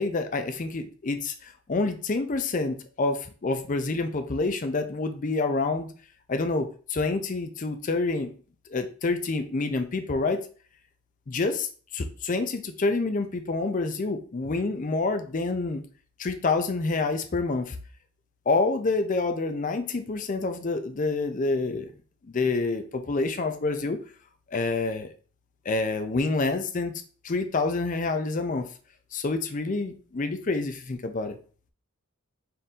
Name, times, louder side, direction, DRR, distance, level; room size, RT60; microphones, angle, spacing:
voice 1, 0.0-5.9 6.3-8.3 8.7-10.4 11.3-11.7 11.9-15.8 16.2-17.8 18.5-21.9 22.3-24.0 24.5-25.1 25.7-26.9 27.2-28.6 29.1-31.4, left 3 dB, 35° left, 8 dB, 0.4 m, -27 dB
4.1 x 2.6 x 3.6 m, 0.40 s
head